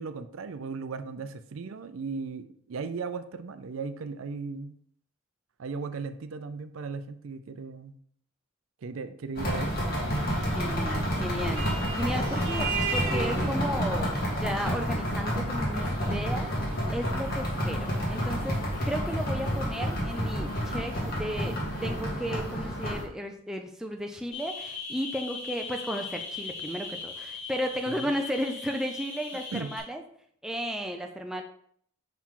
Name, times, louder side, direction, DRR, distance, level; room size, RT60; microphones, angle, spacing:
voice 1, 0.0-4.7 5.6-8.0 8.8-9.9 27.9-28.1 29.5-29.7, right 4 dB, 75° right, 10 dB, 0.5 m, -37 dB
sound 1, 9.3-23.0, equal, 45° left, 1.6 m, -29 dB
voice 2, 10.2-16.5 16.9-18.6 18.8-30.0 30.4-31.4, equal, 5° right, 3 dB, 0.4 m, -34 dB
Vehicle horn car horn honking, 11.5-19.9, right 3 dB, 35° right, 1.4 m, -37 dB
sound 2, 24.3-29.8, left 4 dB, 65° left, 2.2 m, -39 dB
5.8 x 4.6 x 3.7 m, 0.63 s
head